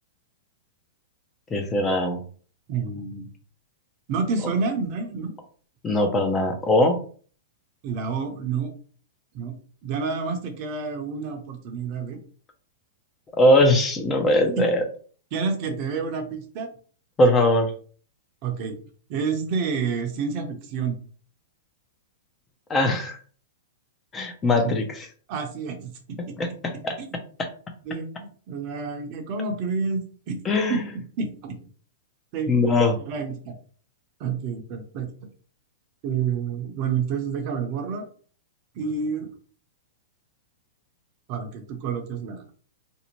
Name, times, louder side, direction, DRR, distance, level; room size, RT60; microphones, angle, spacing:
voice 1, 1.5-2.2 5.8-7.0 13.4-14.8 17.2-17.7 22.7-23.2 24.1-25.0 26.4-26.9 30.4-30.8 32.5-33.0, left 1 dB, 20° left, 4 dB, 0.5 m, -20 dB
voice 2, 2.7-3.3 4.1-5.3 7.8-8.7 9.3-9.5 9.8-12.2 14.6-14.7 15.3-16.7 18.4-18.8 19.1-21.0 24.6-24.7 25.3-26.3 27.0-27.1 27.9-28.1 28.5-30.0 30.3-30.4 30.7-31.6 32.3-32.6 33.1-33.5 34.2-35.1 36.0-38.0 38.7-39.3 41.3-42.4, right 5 dB, 45° right, 5 dB, 0.7 m, -29 dB
2.6 x 2.0 x 2.9 m, 0.43 s
hypercardioid pair, 130°, 0 cm